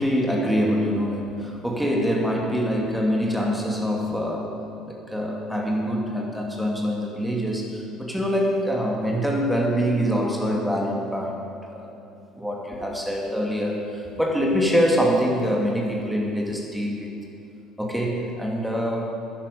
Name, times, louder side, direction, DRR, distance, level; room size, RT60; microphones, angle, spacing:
voice 1, 0.0-4.6 4.8-11.9 12.4-17.2 17.8-19.0, equal, ahead, -2 dB, 2.5 m, -25 dB
12.5 x 10.0 x 5.3 m, 2.6 s
figure-of-eight pair, 55°, 0 cm